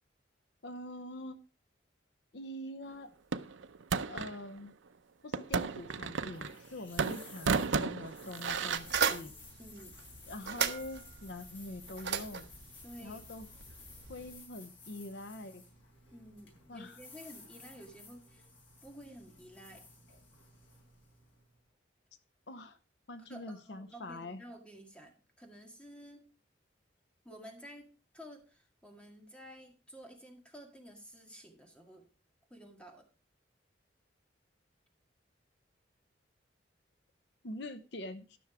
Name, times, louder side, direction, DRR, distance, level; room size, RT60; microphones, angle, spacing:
voice 1, 0.6-1.4 2.3-3.1 4.1-4.7 5.2-9.3 10.3-12.5 13.0-13.5 14.1-15.6 16.7-17.0 22.5-22.8 23.1-24.4 37.4-38.4, left 1 dB, 65° left, 11 dB, 0.8 m, -44 dB
sound 1, 3.3-4.4 5.3-6.7 7.0-8.8, right 5 dB, 85° right, 0.6 m, -33 dB
sound 2, 5.4-21.6, left 3 dB, 85° left, 4.6 m, -55 dB
sound 3, 8.4-14.4, right 7 dB, 65° right, 1.1 m, -37 dB
voice 2, 9.6-10.0 12.8-13.2 16.1-18.5 18.8-19.9 23.2-26.3 27.2-32.1 32.5-33.1, equal, 5° left, 3 dB, 1.9 m, -52 dB
13.0 x 6.2 x 4.8 m, 0.33 s
head